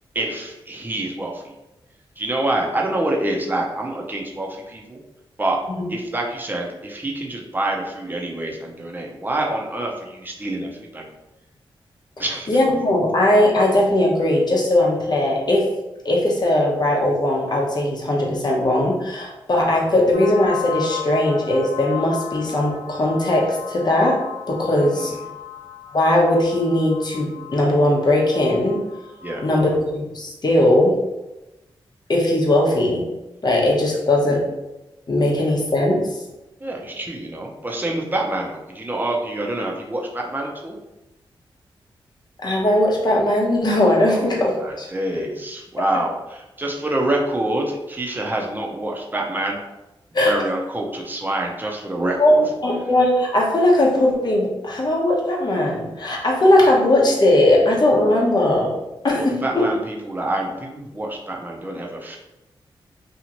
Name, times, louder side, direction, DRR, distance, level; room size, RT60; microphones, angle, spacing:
voice 1, 0.1-1.5 2.2-5.0 5.4-5.6 5.9-11.0 12.2-12.5 24.8-25.2 29.2-29.5 33.9-34.0 36.6-40.7 44.1-49.6 50.2-52.4 59.1-62.2, right 1 dB, 20° right, 0 dB, 0.7 m, -26 dB
voice 2, 12.5-15.7 16.0-24.2 24.5-25.1 25.9-28.8 29.4-31.0 32.1-33.1 33.4-34.4 35.1-36.0 42.4-44.5 44.8-44.9 50.1-50.3 52.2-58.7 59.0-59.6, left 1 dB, 45° left, -2 dB, 0.9 m, -19 dB
sound 1, 20.1-29.6, left 8 dB, 80° left, 1.0 m, -35 dB
2.8 x 2.4 x 2.9 m, 0.98 s
cardioid pair, 55°, 10 cm